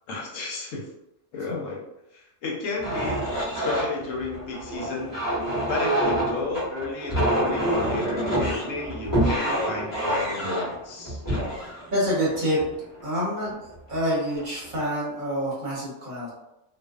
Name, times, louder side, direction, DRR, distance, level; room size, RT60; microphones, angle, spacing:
voice 1, 0.1-0.9 1.3-1.8 2.1-3.2 3.5-5.1 5.7-11.2, left 3 dB, 85° left, -2 dB, 1.0 m, -32 dB
sound 1, 2.8-13.0 13.7-13.9 14.4-14.9, right 1 dB, 15° left, 0.9 m, -27 dB
voice 2, 11.9-12.6 13.0-13.6 13.9-16.3, equal, 45° right, -6 dB, 0.9 m, -27 dB
2.4 x 2.3 x 2.3 m, 0.88 s
omnidirectional pair, 1.3 m